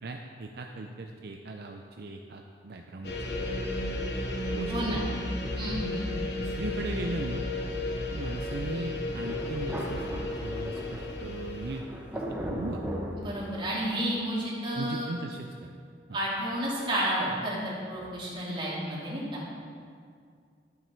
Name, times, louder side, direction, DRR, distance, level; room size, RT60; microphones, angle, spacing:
voice 1, 0.0-3.3 4.5-5.1 6.4-7.4 8.1-11.9 12.1-12.8 14.7-15.7, right 2 dB, 65° right, 3 dB, 0.5 m, -38 dB
sound 1, 3.0-11.8, left 1 dB, 65° left, 1.3 m, -33 dB
voice 2, 4.7-5.0 5.6-6.1 13.2-15.1 16.1-19.4, right 1 dB, 30° right, -7 dB, 2.6 m, -31 dB
Thunder, 9.2-14.0, equal, 10° right, 1.0 m, -37 dB
11.5 x 7.8 x 4.5 m, 2.3 s
head